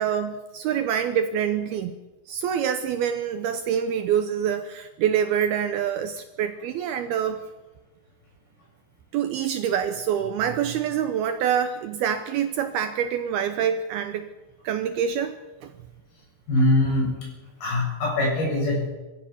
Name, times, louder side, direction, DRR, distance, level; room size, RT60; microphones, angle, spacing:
voice 1, 0.0-2.0 2.3-7.4 9.1-14.3 14.6-15.7, right 8 dB, 75° right, 8 dB, 2.5 m, -26 dB
voice 2, 16.5-17.1 17.6-18.9, left 1 dB, 60° left, -2 dB, 9.1 m, -22 dB
23.5 x 15.5 x 7.2 m, 1.2 s
omnidirectional pair, 5.1 m